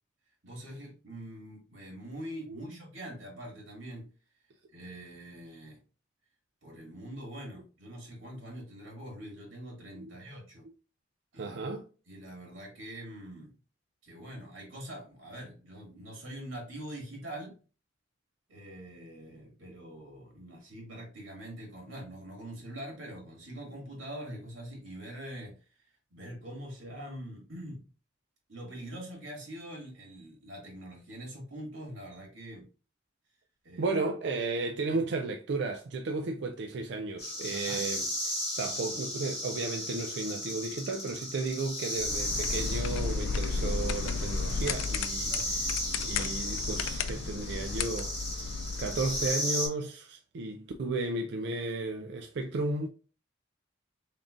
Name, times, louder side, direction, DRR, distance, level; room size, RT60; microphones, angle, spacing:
voice 1, 0.4-4.1 4.7-5.8 6.6-10.6 11.3-11.8 12.1-13.5 14.0-17.6 18.5-25.5 26.1-27.9 28.5-32.7 33.6-33.9 34.9-35.0 37.5-37.8 45.3-45.5, right 1 dB, 90° right, 2.0 m, -44 dB
voice 2, 11.4-11.8 33.8-45.7 46.0-52.9, right 3 dB, 60° right, 0.4 m, -34 dB
sound 1, 37.2-49.7, left 1 dB, 35° left, 2.1 m, -35 dB
sound 2, 42.0-49.3, left 4 dB, 85° left, 0.4 m, -33 dB
3.8 x 3.6 x 2.5 m
head